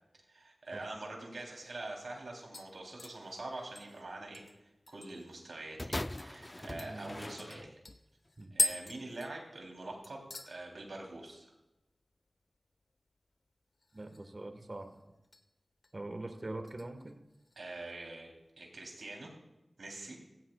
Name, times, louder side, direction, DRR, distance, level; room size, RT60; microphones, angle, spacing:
voice 1, 0.2-7.8 8.5-11.5 17.6-18.3 18.6-19.3 19.8-20.2, right 2 dB, 80° right, 0 dB, 3.1 m, -45 dB
sound 1, 1.5-1.6 1.9-2.2 2.5-5.4 5.7-5.8 6.2-6.3 6.8-9.8 10.0-10.5 10.9-11.3 11.6-11.7 13.8-14.4 14.7-15.4 15.8-16.1 16.7-17.6 17.9-18.0, left 2 dB, 65° left, 0.9 m, -40 dB
sound 2, 5.8-8.0 8.8-8.9, left 1 dB, 25° left, 0.4 m, -41 dB
voice 2, 6.7-7.4 8.4-8.6 13.9-15.0 15.9-17.2, right 2 dB, 50° right, 7 dB, 1.3 m, -43 dB
16.0 x 15.5 x 2.3 m, 0.98 s
cardioid pair, 40°, 0 cm